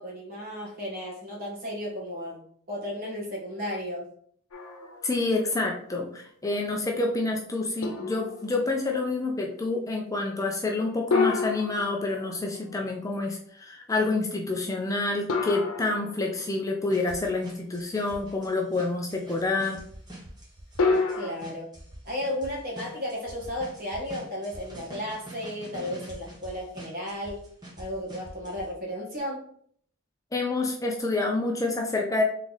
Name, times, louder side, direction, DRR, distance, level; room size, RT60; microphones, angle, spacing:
voice 1, 0.0-2.4 2.7-4.1 21.1-21.7 22.0-27.4 27.8-29.4, left 1 dB, 45° right, -2 dB, 1.4 m, -34 dB
sound 1, 4.5-5.4 5.9-6.0 7.8-8.7 11.1-12.7 15.3-16.6 20.8-21.3, left 4 dB, 90° left, 0.8 m, -29 dB
voice 2, 5.0-19.8 30.3-32.2, left 2 dB, 15° left, 0 dB, 0.4 m, -28 dB
sound 2, 16.9-28.6, right 1 dB, 20° right, 1.3 m, -44 dB
3.7 x 3.2 x 3.9 m, 0.62 s
head